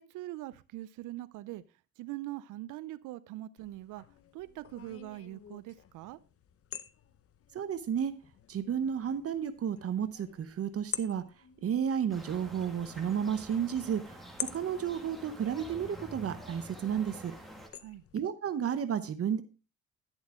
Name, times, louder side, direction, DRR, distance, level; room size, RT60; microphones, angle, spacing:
voice 1, 0.0-1.6 2.0-4.0 4.3-6.2 17.8-18.0, right 16 dB, 85° right, 0.5 m, -42 dB
sound 1, 3.6-18.2, left 9 dB, 50° left, 0.7 m, -48 dB
voice 2, 7.5-8.1 8.5-11.2 11.6-14.2 14.5-17.3 18.1-19.4, right 8 dB, 50° right, 0.8 m, -32 dB
sound 2, 12.1-17.7, right 1 dB, ahead, 2.0 m, -48 dB
11.0 x 7.2 x 3.6 m
cardioid pair, 90°, 30 cm